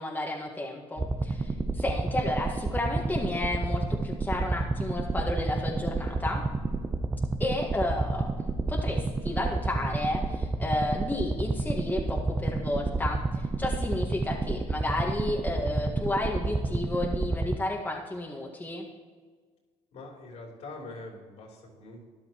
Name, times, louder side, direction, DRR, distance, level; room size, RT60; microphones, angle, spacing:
voice 1, 0.0-6.4 7.4-8.3 8.7-18.9, left 1 dB, 15° left, -1 dB, 1.6 m, -32 dB
sound 1, 1.0-17.5, right 3 dB, 20° right, 0.7 m, -30 dB
voice 2, 19.9-22.0, left 2 dB, 70° left, -2 dB, 3.4 m, -44 dB
13.0 x 10.5 x 3.0 m, 1.5 s
supercardioid pair, 85°, 12 cm